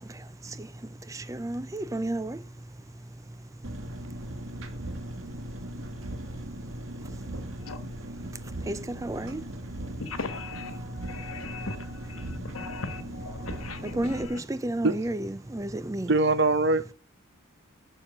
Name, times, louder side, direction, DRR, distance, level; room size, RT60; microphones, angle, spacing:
voice 1, 0.0-7.3 7.6-7.7 8.1-10.0 12.2-12.3 13.8-16.1, right 1 dB, 15° right, 0.4 m, -35 dB
Engine, 3.6-14.3, right 1 dB, 70° right, 1.5 m, -38 dB
voice 2, 10.0-14.4, left 3 dB, 85° left, 1.4 m, -39 dB
voice 3, 16.1-16.9, right 2 dB, 55° right, 0.8 m, -22 dB
7.4 x 6.6 x 7.2 m
head